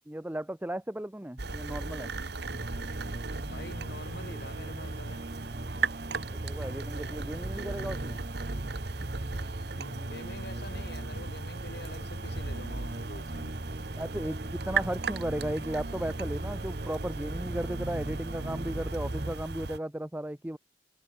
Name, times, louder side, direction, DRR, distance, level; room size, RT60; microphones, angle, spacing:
voice 1, 0.1-2.1 6.3-8.2 14.0-20.6, right 1 dB, 10° right, 0.8 m, -35 dB
sound 1, 1.4-19.8, right 4 dB, 60° right, 1.4 m, -37 dB
sound 2, 1.5-14.4 14.7-15.8, left 1 dB, 30° left, 2.6 m, -57 dB
sound 3, 2.4-19.4, right 1 dB, 45° right, 1.1 m, -39 dB
voice 2, 3.4-5.2 9.8-13.8, left 2 dB, 60° left, 4.2 m, -46 dB
head